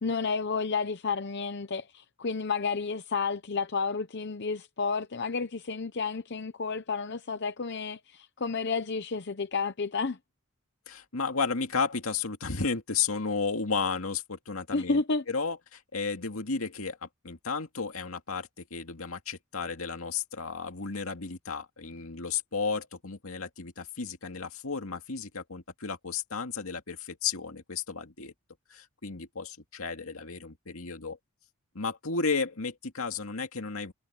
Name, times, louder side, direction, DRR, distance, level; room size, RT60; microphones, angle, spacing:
voice 1, 0.0-10.2 14.7-15.2, left 4 dB, 50° left, 0.8 m, -31 dB
voice 2, 10.9-15.0 15.3-28.3 28.7-31.2 31.7-33.9, left 5 dB, 75° left, 2.3 m, -33 dB
head